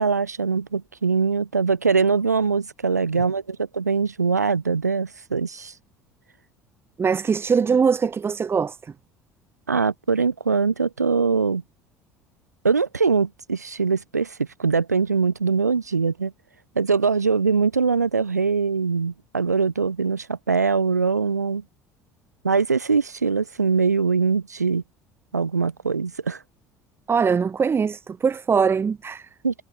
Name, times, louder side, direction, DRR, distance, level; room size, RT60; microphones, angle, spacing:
voice 1, 0.0-5.7 9.7-11.6 12.6-16.3 16.8-21.6 22.4-24.8 25.3-26.4 29.4-29.5, right 5 dB, 85° right, 0.8 m, -22 dB
voice 2, 7.0-8.9 27.1-29.3, right 6 dB, 25° right, 1.3 m, -22 dB
figure-of-eight pair, 60°, 9 cm